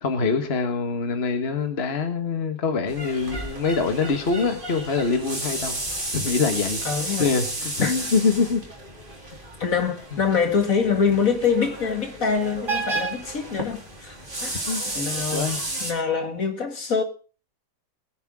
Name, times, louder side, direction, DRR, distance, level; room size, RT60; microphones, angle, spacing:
voice 1, 0.0-5.8 6.1-6.8 7.2-8.6 14.7-14.8 15.3-15.6, left 4 dB, 40° left, 1.7 m, -24 dB
sound 1, 2.9-15.9, right 2 dB, 30° right, 3.7 m, -32 dB
voice 2, 6.8-7.3 7.8-7.9 9.6-14.5 15.0-15.5 15.8-17.0, left 6 dB, 60° left, 2.3 m, -24 dB
22.0 x 10.0 x 3.7 m
omnidirectional pair, 1.6 m